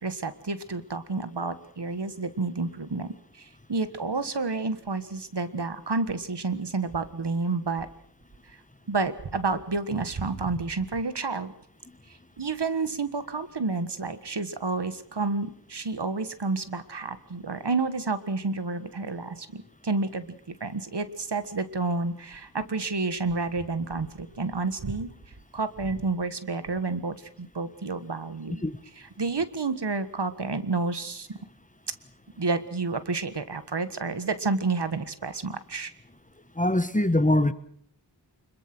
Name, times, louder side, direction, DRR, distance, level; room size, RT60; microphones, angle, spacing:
voice 1, 0.0-7.9 8.4-8.6 8.9-11.5 12.1-25.1 25.5-28.6 29.0-31.4 32.4-35.9, right 3 dB, 75° right, 1.6 m, -30 dB
voice 2, 36.6-37.5, left 1 dB, 20° left, 1.3 m, -22 dB
25.5 x 22.0 x 6.2 m
wide cardioid pair, 60°, 42 cm